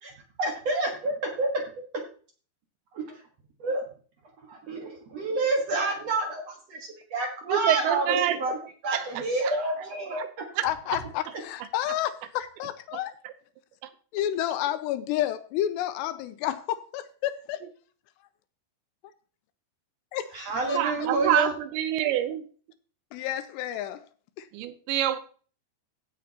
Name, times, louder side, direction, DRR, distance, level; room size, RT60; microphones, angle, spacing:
voice 1, 0.4-1.6 2.9-3.1 3.6-3.8 4.5-8.6 8.8-10.2 20.3-21.5, right 2 dB, 55° right, 1.9 m, -28 dB
voice 2, 7.5-8.6 8.9-9.1 9.4-9.5 10.1-10.3 10.6-11.0 11.9-12.0 13.2-13.3 20.7-22.4 24.5-25.2, right 11 dB, 85° right, 3.2 m, -27 dB
voice 3, 10.6-13.1 14.1-17.6 20.1-20.3 20.7-20.8 23.1-24.0 24.4-24.5, left 12 dB, 85° left, 2.6 m, -30 dB
16.0 x 7.3 x 2.9 m
omnidirectional pair, 5.1 m